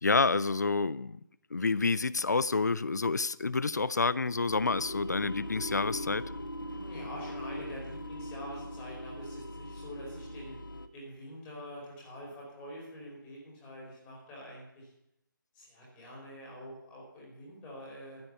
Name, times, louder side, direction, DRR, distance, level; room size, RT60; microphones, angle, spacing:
voice 1, 0.0-1.2 1.5-6.2, left 4 dB, 55° left, 18 dB, 0.5 m, -28 dB
sound 1, 4.5-10.9, equal, 70° left, 1.5 m, -40 dB
voice 2, 6.6-10.5 10.9-14.9 15.5-18.2, equal, 10° left, -5 dB, 5.1 m, -46 dB
14.0 x 9.2 x 8.4 m, 0.80 s
figure-of-eight pair, 155°, 11 cm